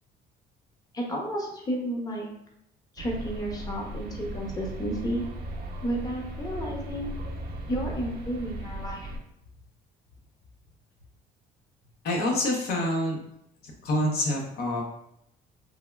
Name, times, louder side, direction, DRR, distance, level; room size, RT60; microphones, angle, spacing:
voice 1, 0.9-2.3 2.9-5.2 5.8-7.1 7.7-9.0, right 1 dB, 20° left, -1 dB, 0.7 m, -32 dB
sound 1, 3.0-9.2, equal, 65° right, 0.5 m, -37 dB
voice 2, 12.0-13.2 13.6-14.8, left 1 dB, 70° left, 0 dB, 0.7 m, -27 dB
3.3 x 2.2 x 2.2 m, 0.77 s
cardioid pair, 110°, 17 cm